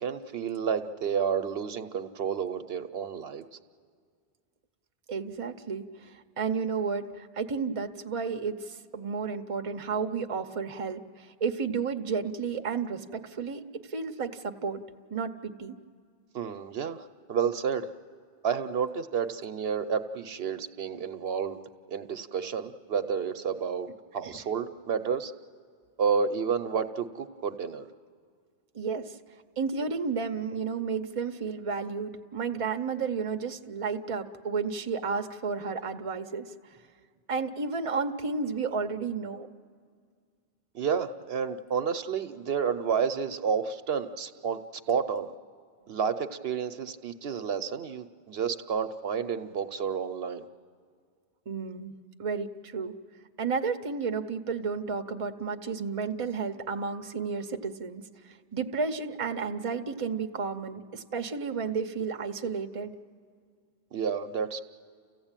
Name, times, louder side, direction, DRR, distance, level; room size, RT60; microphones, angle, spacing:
voice 1, 0.0-3.5 16.3-17.9 18.4-21.6 21.9-23.9 24.1-25.3 26.0-27.9 40.7-44.6 44.9-45.3 45.9-50.5 63.9-64.6, right 6 dB, 70° right, 9 dB, 1.0 m, -30 dB
voice 2, 5.1-13.6 13.9-14.8 15.1-15.8 24.2-24.4 28.7-29.2 29.6-36.8 37.3-39.5 51.5-51.9 52.2-52.9 53.4-62.9, right 5 dB, 35° right, 6 dB, 0.8 m, -32 dB
29.5 x 15.0 x 8.9 m, 2.1 s
omnidirectional pair, 1.1 m